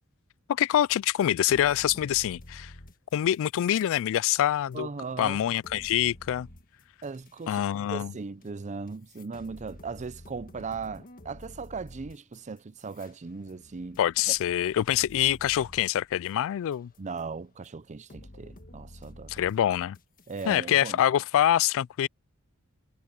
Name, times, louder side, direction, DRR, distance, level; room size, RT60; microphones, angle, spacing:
voice 1, 0.5-2.7 3.1-4.9 5.2-6.5 7.5-8.1 14.0-16.9 19.3-20.0 20.5-22.1, left 11 dB, 60° left, 0.3 m, -25 dB
sound 1, 1.0-1.1 1.5-3.9 4.2-7.5 8.4-8.5 8.9-16.3 16.7-17.2 17.6-17.7 18.1-20.5, left 1 dB, 40° left, 1.6 m, -50 dB
voice 2, 4.7-5.4 7.0-7.6 7.9-14.0 17.0-19.4 20.3-21.0, right 4 dB, 35° right, 0.5 m, -38 dB
head